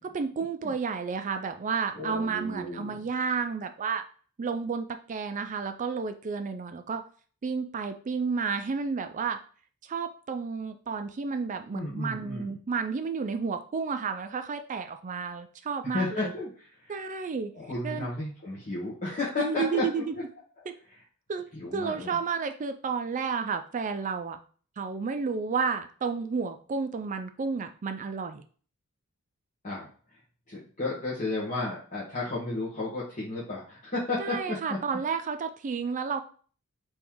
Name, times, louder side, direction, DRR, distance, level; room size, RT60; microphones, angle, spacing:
voice 1, 0.0-4.0 4.4-7.0 7.4-9.4 9.8-16.3 16.9-17.5 17.8-18.1 19.4-20.1 20.7-20.8 21.3-21.5 21.7-24.4 24.8-28.4 34.2-36.2, right 5 dB, 35° right, 8 dB, 0.4 m, -31 dB
voice 2, 1.9-3.0 11.7-12.6 15.9-17.0 17.5-20.2 21.5-22.2 29.6-29.9 30.5-34.8, left 2 dB, 35° left, -8 dB, 1.2 m, -33 dB
3.7 x 3.0 x 4.6 m, 0.42 s
head